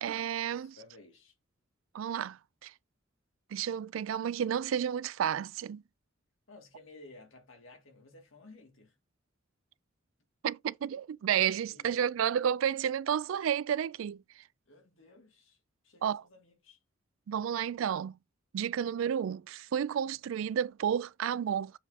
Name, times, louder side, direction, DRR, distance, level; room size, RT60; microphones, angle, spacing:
voice 1, 0.0-0.8 1.9-2.7 3.5-5.8 10.4-14.2 16.0-16.2 17.3-18.1 18.5-21.7, right 9 dB, 80° right, 0.3 m, -31 dB
voice 2, 0.6-1.3 4.6-4.7 6.5-9.0 11.6-12.0 14.7-15.6 15.8-16.8, left 2 dB, 85° left, 2.5 m, -55 dB
7.1 x 3.6 x 4.1 m
head